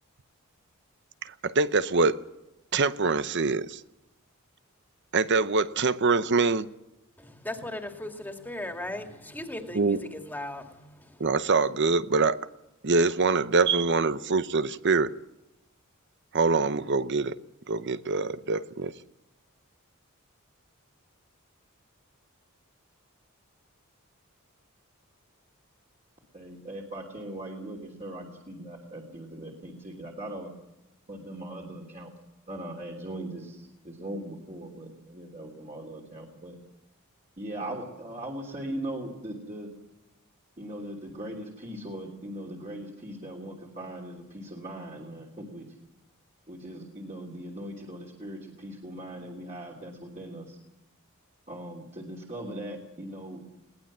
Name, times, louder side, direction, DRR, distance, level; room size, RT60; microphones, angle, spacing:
voice 1, 1.2-2.2 2.7-3.8 5.1-6.7 9.7-10.0 11.2-12.4 12.8-15.1 16.3-17.4 17.7-18.9, right 4 dB, 55° right, 0.8 m, -24 dB
voice 2, 7.2-11.3, left 1 dB, 10° left, 2.4 m, -38 dB
voice 3, 26.3-30.5 31.1-32.1 32.5-36.6 37.4-39.7 40.6-45.7 46.5-50.6 51.5-53.4, right 1 dB, 35° right, 3.1 m, -39 dB
21.0 x 18.5 x 7.4 m
head